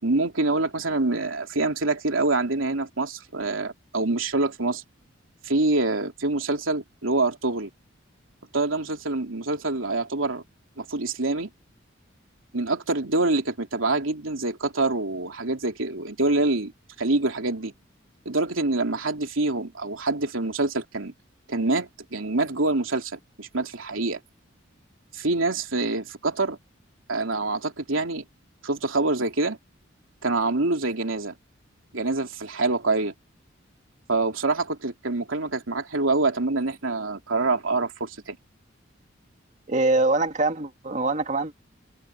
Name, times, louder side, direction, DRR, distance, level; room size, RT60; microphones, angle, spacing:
voice 1, 0.0-4.8 5.4-7.7 8.5-10.4 10.8-11.5 12.5-16.7 17.0-17.7 18.2-21.1 21.5-24.2 25.1-26.6 27.1-28.2 28.6-29.6 30.2-31.3 31.9-33.1 34.1-38.4, right 2 dB, 90° right, 3.0 m, -26 dB
voice 2, 39.7-41.5, right 2 dB, 35° right, 2.3 m, -23 dB
open air
head